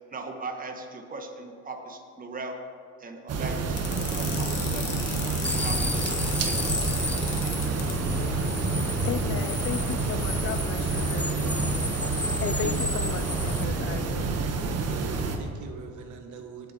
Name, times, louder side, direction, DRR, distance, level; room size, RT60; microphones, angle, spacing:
voice 1, 0.1-2.6 3.0-4.9 5.2-6.1 6.4-7.5, right 3 dB, 25° right, 3 dB, 1.6 m, -39 dB
sound 1, 3.3-15.4, right 4 dB, 50° right, 1.5 m, -28 dB
sound 2, 3.8-7.9, left 7 dB, 70° left, 2.3 m, -35 dB
sound 3, 5.4-13.6, left 2 dB, 5° left, 0.3 m, -33 dB
voice 2, 7.8-11.9 12.4-14.3 14.6-15.1, left 9 dB, 45° left, 10 dB, 0.6 m, -36 dB
voice 3, 12.4-12.7 14.7-16.7, right 6 dB, 65° right, 4 dB, 1.7 m, -42 dB
19.0 x 7.4 x 4.6 m, 2.5 s
supercardioid pair, 85°, 32 cm